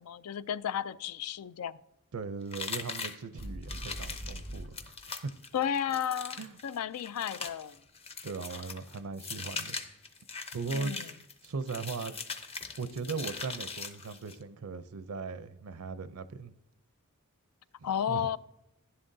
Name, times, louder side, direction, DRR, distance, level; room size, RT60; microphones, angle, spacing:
voice 1, 0.0-1.8 5.5-7.8 10.7-11.1 17.8-18.4, left 9 dB, 85° left, 0.4 m, -33 dB
voice 2, 2.1-5.3 6.4-6.6 8.2-9.8 10.5-11.0 11.4-12.2 12.8-16.5 17.8-18.3, right 4 dB, 75° right, 0.5 m, -38 dB
sound 1, 2.5-14.4, left 4 dB, 25° left, 0.7 m, -41 dB
sound 2, 3.4-4.7, equal, 45° left, 2.1 m, -41 dB
11.0 x 10.5 x 2.7 m
head